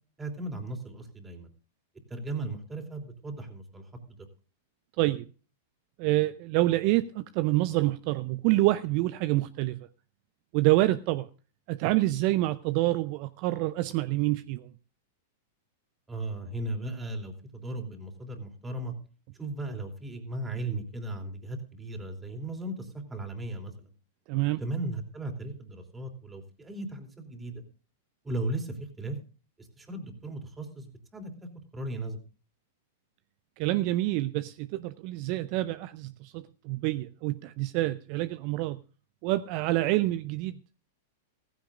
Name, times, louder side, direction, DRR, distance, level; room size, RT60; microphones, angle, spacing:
voice 1, 0.2-1.5 2.1-3.8 16.1-18.9 19.4-23.7 24.6-27.6 28.2-29.2 29.8-31.3 31.7-32.2, right 2 dB, 15° right, 3.0 m, -36 dB
voice 2, 6.0-9.9 10.5-11.3 11.7-14.7 24.3-24.6 33.6-38.8 39.2-40.6, right 17 dB, 50° right, 0.5 m, -27 dB
16.0 x 15.0 x 2.5 m
hypercardioid pair, 110°, 0 cm